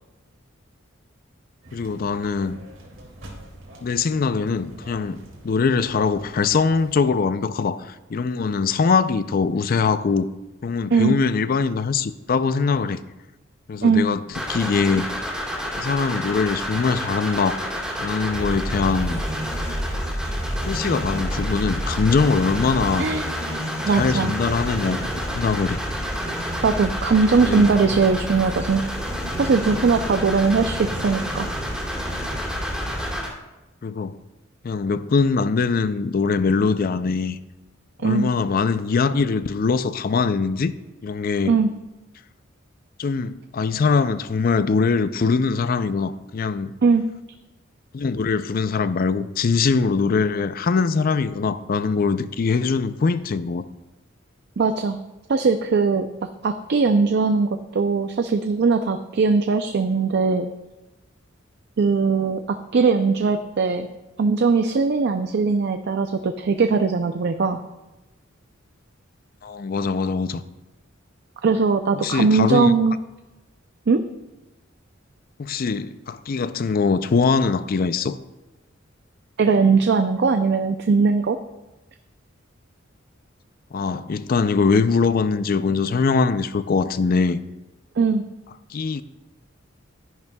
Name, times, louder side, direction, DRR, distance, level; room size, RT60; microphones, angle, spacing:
sound 1, 1.6-7.0, right 1 dB, 75° right, 2.4 m, -45 dB
voice 1, 1.7-2.6 3.8-5.2 5.4-10.3 10.6-13.0 13.7-14.2 14.5-15.1 15.8-17.6 18.0-19.2 20.7-23.1 23.9-25.8 27.4-27.7 33.8-34.2 34.6-37.4 38.0-40.7 41.0-41.6 43.0-46.7 47.9-53.6 69.4-70.4 72.0-72.7 75.4-78.2 83.7-87.4 88.7-89.0, left 4 dB, 45° left, 0.4 m, -22 dB
sound 2, 14.3-33.3, equal, 5° right, 2.4 m, -28 dB
voice 2, 23.0-23.3 23.9-24.3 26.6-28.9 29.4-31.5 38.0-38.3 41.5-41.7 46.8-47.0 54.6-55.0 55.3-56.1 56.4-60.5 61.8-62.4 62.7-63.9 64.2-67.6 71.4-73.0 73.9-74.0 79.4-81.4 88.0-88.2, right 4 dB, 60° right, 0.4 m, -20 dB
12.0 x 10.5 x 2.3 m
head